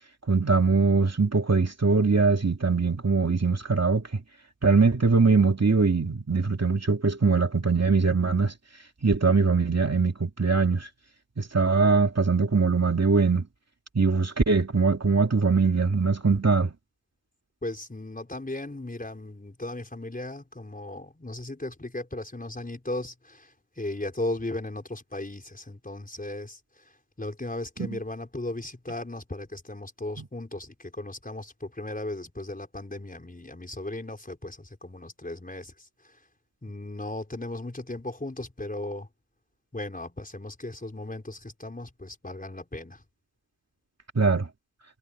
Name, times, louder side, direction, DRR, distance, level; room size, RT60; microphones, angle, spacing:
voice 1, 0.3-4.0 4.6-8.5 9.0-10.9 11.4-13.5 13.9-16.7 27.8-28.0 30.2-30.3 44.2-44.5, right 4 dB, 35° right, 2.7 m, -22 dB
voice 2, 17.6-26.9 27.2-36.2 36.6-39.1 39.7-43.0, left 2 dB, 20° left, 4.6 m, -36 dB
wide cardioid pair, 115°, 47 cm